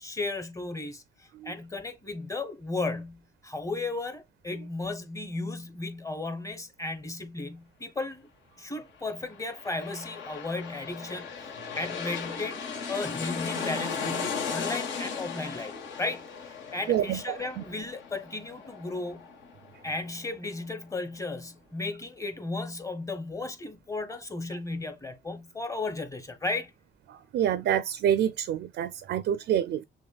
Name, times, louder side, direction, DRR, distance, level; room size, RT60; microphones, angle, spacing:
voice 1, 0.0-8.3 8.6-12.6 12.9-19.3 19.8-26.7, left 3 dB, 15° left, 0.9 m, -35 dB
sound 1, 9.2-20.5 20.9-21.0, left 5 dB, 70° left, 1.3 m, -37 dB
voice 2, 16.9-17.6 27.1-29.8, right 10 dB, 65° right, 0.4 m, -27 dB
6.3 x 2.2 x 2.3 m
cardioid pair, 90°, 20 cm